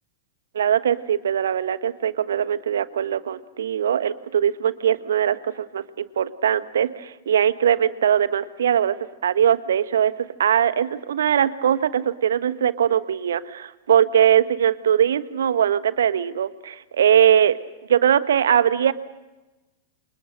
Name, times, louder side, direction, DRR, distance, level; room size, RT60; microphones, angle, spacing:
voice 1, 0.5-9.0 9.2-10.1 10.4-17.6 17.9-18.9, right 9 dB, 65° right, 13 dB, 1.3 m, -21 dB
28.5 x 27.5 x 6.6 m, 1.1 s
figure-of-eight pair, 95°, 0 cm